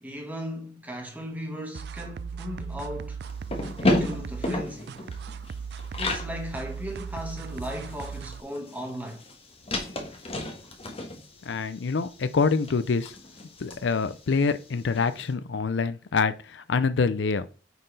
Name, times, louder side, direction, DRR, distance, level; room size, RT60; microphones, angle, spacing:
voice 1, 0.0-3.2 3.8-5.0 6.0-9.2, equal, 10° right, 1.6 m, -37 dB
sound 1, 1.7-8.4, right 6 dB, 60° right, 0.3 m, -37 dB
sound 2, 3.2-6.3 6.7-6.8 7.1-15.1, left 1 dB, 30° left, 1.3 m, -32 dB
voice 2, 11.5-13.1 13.6-17.5, left 4 dB, 70° left, 0.5 m, -26 dB
9.2 x 4.4 x 3.3 m
head